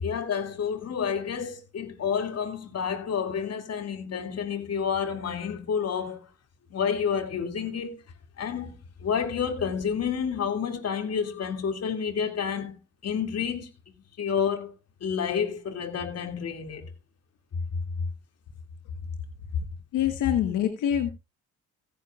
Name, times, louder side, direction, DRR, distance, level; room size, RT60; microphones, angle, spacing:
voice 1, 0.0-6.3 6.7-8.0 8.4-12.8 13.0-13.7 14.2-14.7 15.0-16.9, left 7 dB, 55° left, 2.5 m, -29 dB
voice 2, 19.9-21.1, left 10 dB, 85° left, 1.4 m, -25 dB
16.0 x 10.0 x 2.4 m
cardioid pair, 90°, 30 cm